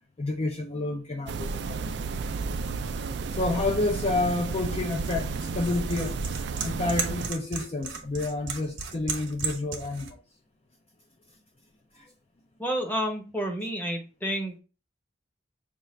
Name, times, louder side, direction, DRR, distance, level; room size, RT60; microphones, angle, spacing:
voice 1, 0.2-1.8 3.3-6.2 6.6-10.2 11.9-12.1, left 2 dB, 35° left, 0.4 m, -29 dB
sound 1, 1.3-7.3, right 4 dB, 65° right, 0.4 m, -32 dB
sound 2, 4.2-10.1, right 5 dB, 85° right, 0.9 m, -37 dB
voice 2, 12.6-14.6, equal, 10° left, 0.8 m, -30 dB
5.3 x 2.4 x 3.1 m
head